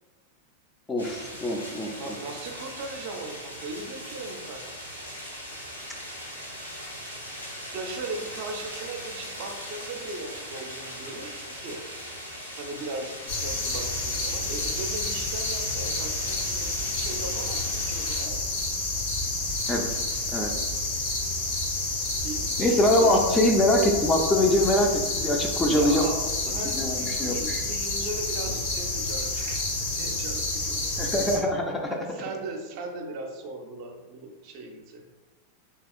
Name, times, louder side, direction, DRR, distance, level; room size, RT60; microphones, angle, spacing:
voice 1, 0.9-1.9 19.7-19.9 20.3-20.5 22.6-26.0 26.7-27.6 31.0-32.0, left 1 dB, 15° left, 1 dB, 0.4 m, -23 dB
sound 1, 1.0-18.2, equal, 90° left, 0.8 m, -40 dB
voice 2, 2.0-4.8 7.7-11.8 12.6-18.5 22.2-23.3 25.7-30.9 31.9-35.0, right 2 dB, 45° right, 2 dB, 0.5 m, -38 dB
sound 2, 13.3-31.4, left 2 dB, 50° left, 0.7 m, -29 dB
3.4 x 2.7 x 2.4 m, 1.3 s
figure-of-eight pair, 90°, 0 cm